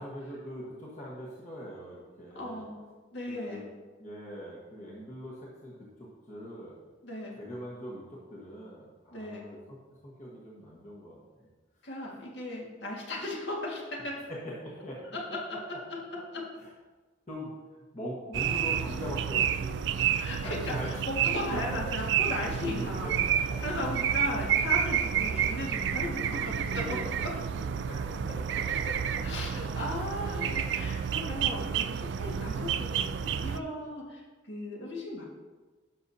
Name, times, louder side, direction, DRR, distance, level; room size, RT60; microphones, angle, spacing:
voice 1, 0.0-2.6 3.3-3.6 4.0-5.8 6.3-6.7 7.3-9.8 10.0-11.5 14.3-15.0 16.6-16.7 17.3-17.5 17.9-20.1 20.4-20.9 21.3-21.4 21.7-21.8 22.5-23.1 23.5-23.9 25.3-25.4 26.1-27.3 27.5-29.4 32.2-32.4, equal, 35° left, -5 dB, 1.4 m, -42 dB
voice 2, 2.4-2.8 3.1-3.7 7.0-7.4 9.1-9.5 11.8-14.2 15.1-15.8 16.3-16.4 20.1-23.3 23.6-27.3 28.9-29.0 29.2-35.2, left 1 dB, 60° left, -3 dB, 1.9 m, -37 dB
sound 1, 18.3-33.6, right 8 dB, 60° right, 0.3 m, -30 dB
12.0 x 6.2 x 2.8 m, 1.3 s
head